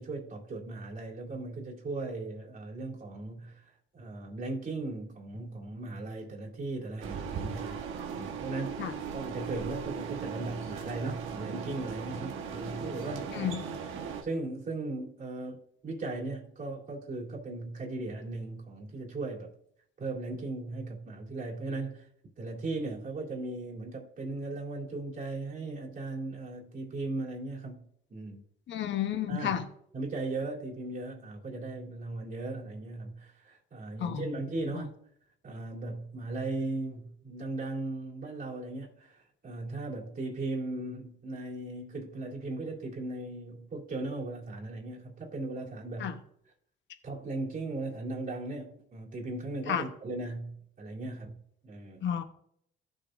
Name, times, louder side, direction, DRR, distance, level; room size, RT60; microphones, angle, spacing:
voice 1, 0.0-7.8 8.1-13.6 13.9-19.5 20.0-22.1 22.4-28.5 29.3-29.6 29.9-34.9 35.4-46.2 47.0-51.4 51.6-52.1, right 2 dB, 45° right, 3.4 m, -37 dB
sound 1, 7.0-14.2, right 6 dB, 85° right, 1.4 m, -38 dB
voice 2, 28.7-29.6 34.0-34.2 46.0-46.1 49.7-49.8 52.0-52.2, left 9 dB, 65° left, 1.0 m, -31 dB
14.5 x 6.9 x 2.7 m
cardioid pair, 90°, 20 cm